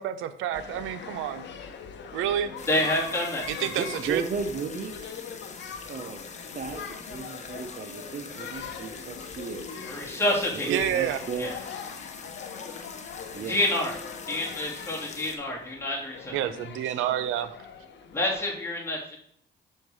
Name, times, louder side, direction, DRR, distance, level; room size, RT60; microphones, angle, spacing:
voice 1, 0.0-1.4 2.1-2.5 3.5-4.2 10.7-11.2 16.3-17.5, right 10 dB, 90° right, 10 dB, 0.6 m, -28 dB
sound 1, 0.5-18.4, left 7 dB, 65° left, 0.9 m, -41 dB
sound 2, 2.6-15.4, left 5 dB, 35° left, 1.0 m, -44 dB
voice 2, 2.7-3.4 9.8-10.7 11.4-11.6 13.5-14.0 14.3-16.3 18.1-19.2, left 1 dB, 10° left, -4 dB, 2.6 m, -28 dB
voice 3, 3.6-4.9 5.9-6.2 6.5-9.6 10.7-11.5 13.3-13.6, right 5 dB, 40° right, 7 dB, 0.7 m, -34 dB
6.4 x 4.6 x 4.7 m, 0.65 s
cardioid pair, 90°, 20 cm